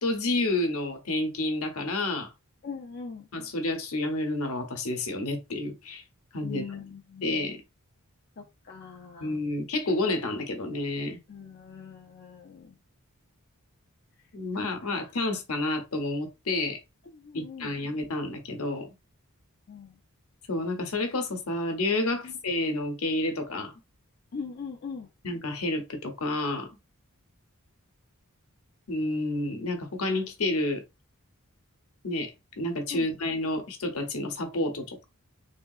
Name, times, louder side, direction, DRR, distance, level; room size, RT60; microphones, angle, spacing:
voice 1, 0.0-2.3 3.3-6.0 6.3-6.7 7.2-7.6 9.2-11.2 14.3-16.8 17.3-18.9 20.5-23.7 25.2-26.7 28.9-30.8 32.0-32.3 32.6-35.0, left 2 dB, 75° left, 0.9 m, -29 dB
voice 2, 2.6-3.3 6.4-7.6 8.4-9.4 11.3-12.8 14.5-15.1 17.0-17.7 18.0-18.1 19.7-20.0 22.2-22.4 24.3-25.1 32.9-33.1, left 5 dB, 50° left, 0.5 m, -41 dB
3.5 x 2.7 x 2.4 m
head